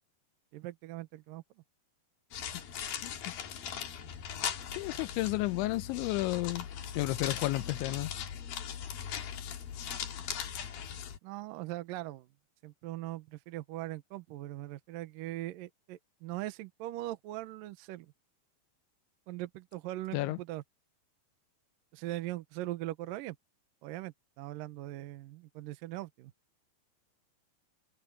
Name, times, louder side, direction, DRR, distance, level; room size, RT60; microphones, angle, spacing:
voice 1, 0.5-1.4 11.2-12.3 12.6-18.1 19.3-20.6 21.9-23.4 23.8-26.3, right 16 dB, 80° right, 2.0 m, -40 dB
sound 1, 2.3-11.2, left 8 dB, 60° left, 3.4 m, -39 dB
voice 2, 4.8-6.7 7.0-8.1 20.1-20.4, left 19 dB, 90° left, 3.2 m, -32 dB
omnidirectional pair, 5.2 m